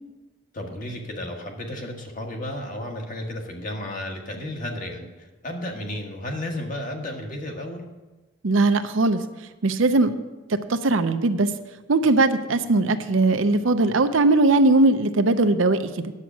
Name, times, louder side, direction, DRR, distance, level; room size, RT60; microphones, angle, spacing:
voice 1, 0.5-7.8, left 1 dB, 40° left, 2 dB, 1.5 m, -33 dB
voice 2, 8.4-9.2 9.6-10.1 10.5-11.5 11.9-16.1, right 2 dB, 75° right, 9 dB, 0.7 m, -20 dB
9.8 x 7.4 x 6.0 m, 1.2 s
head